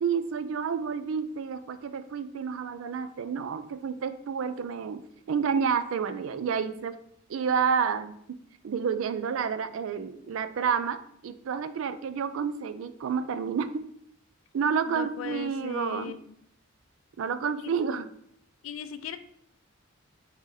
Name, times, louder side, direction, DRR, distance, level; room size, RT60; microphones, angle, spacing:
voice 1, 0.0-5.0 5.3-6.9 7.3-8.4 8.6-13.9 14.5-16.1 17.2-18.1, right 6 dB, 80° right, 12 dB, 0.4 m, -29 dB
voice 2, 14.9-16.3 17.6-17.7 18.6-19.2, left 7 dB, 75° left, 11 dB, 0.4 m, -38 dB
4.6 x 2.7 x 3.8 m, 0.68 s
head